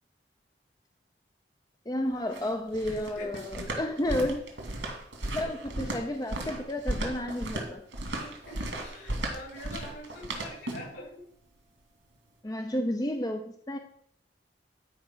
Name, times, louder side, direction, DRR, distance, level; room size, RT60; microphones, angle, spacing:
voice 1, 1.9-4.4 5.3-7.8 12.4-13.8, left 1 dB, 20° left, 5 dB, 0.6 m, -31 dB
sound 1, 2.1-11.0, right 1 dB, 85° right, 2.6 m, -35 dB
voice 2, 5.2-5.5 8.2-11.2, left 1 dB, 70° left, -2 dB, 5.1 m, -44 dB
11.5 x 4.7 x 6.2 m, 0.64 s
head